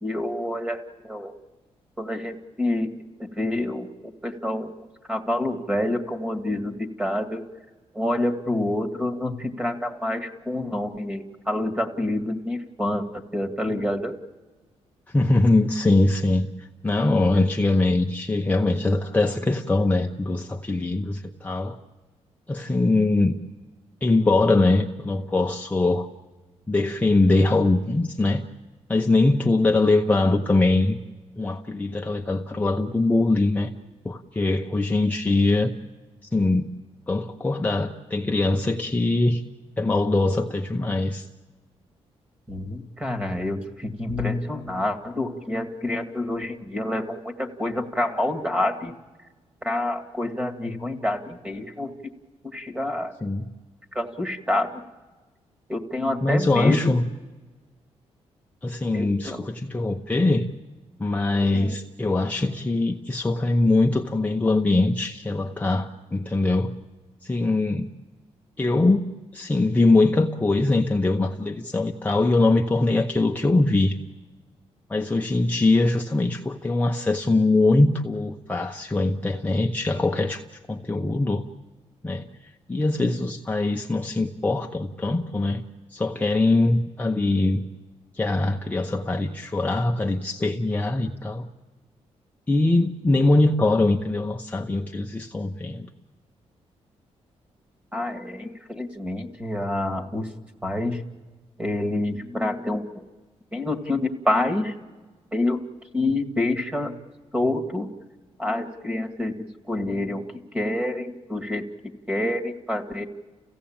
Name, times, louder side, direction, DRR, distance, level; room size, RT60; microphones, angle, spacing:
voice 1, 0.0-1.3 2.0-2.9 3.2-4.7 5.1-7.4 7.9-14.1 42.5-48.9 49.6-51.9 52.5-53.1 53.9-54.8 55.7-56.8 58.9-59.4 61.5-61.7 97.9-100.3 100.6-101.0 101.6-103.1 103.5-104.7 105.3-105.6 105.9-106.9 107.3-107.9 108.4-110.3 110.5-111.7 112.1-113.0, left 1 dB, 10° right, 8 dB, 2.1 m, -27 dB
voice 2, 15.1-21.8 22.5-23.3 24.0-26.1 26.7-28.4 28.9-31.0 31.4-33.7 34.0-35.7 36.3-36.6 37.1-39.4 39.8-41.3 53.2-53.4 56.2-57.0 58.6-60.5 61.0-66.7 67.2-67.9 68.6-69.0 69.3-74.0 74.9-80.4 80.7-81.4 82.0-85.6 85.9-87.6 88.1-91.5 92.5-95.9, left 2 dB, 15° left, 2 dB, 0.8 m, -22 dB
30.0 x 16.0 x 8.8 m, 1.3 s
cardioid pair, 130°, 11 cm